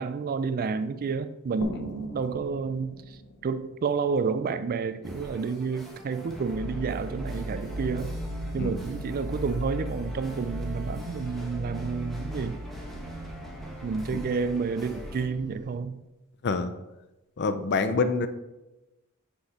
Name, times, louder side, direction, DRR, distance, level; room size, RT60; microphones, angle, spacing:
voice 1, 0.0-8.2 8.5-12.6 13.8-16.0 17.8-18.1, right 5 dB, 45° right, 12 dB, 0.3 m, -30 dB
sound 1, 1.6-5.1, left 2 dB, 85° left, 0.8 m, -43 dB
sound 2, 5.0-15.3, equal, ahead, 1.0 m, -44 dB
sound 3, 6.4-15.8, equal, 90° right, 1.3 m, -37 dB
voice 2, 17.4-18.3, left 4 dB, 50° left, 10 dB, 0.5 m, -26 dB
5.9 x 5.6 x 4.2 m, 1.0 s
head